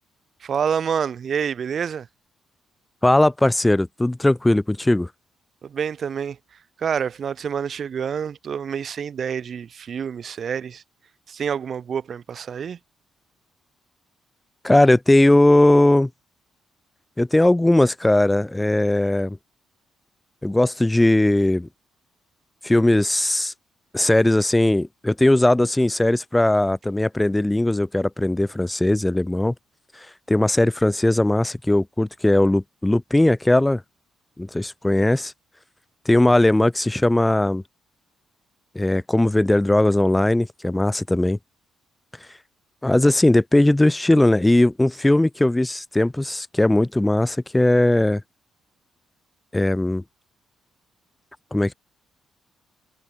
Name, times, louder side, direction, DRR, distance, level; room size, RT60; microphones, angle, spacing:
voice 1, 0.4-2.1 5.6-6.4 6.8-10.8 11.3-12.8, right 7 dB, 55° right, 7.1 m, -27 dB
voice 2, 3.0-5.1 14.6-16.1 17.2-19.4 20.4-21.7 22.6-23.5 23.9-29.5 30.3-33.8 34.4-35.3 36.0-37.6 38.7-41.4 42.8-48.2 49.5-50.0 51.5-51.7, left 1 dB, 15° left, 3.2 m, -19 dB
hypercardioid pair, 50°, 0 cm